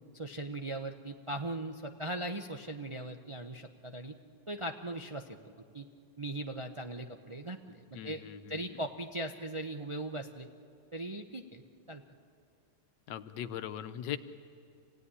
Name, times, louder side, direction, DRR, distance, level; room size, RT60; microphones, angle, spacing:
voice 1, 0.1-4.1 4.5-5.9 6.2-8.2 8.5-10.5 10.9-11.6 11.9-12.0, right 1 dB, 40° right, 4 dB, 0.4 m, -39 dB
voice 2, 7.9-8.6 13.1-14.2, left 10 dB, 85° left, 11 dB, 1.5 m, -40 dB
26.5 x 16.5 x 9.8 m, 2.3 s
omnidirectional pair, 1.9 m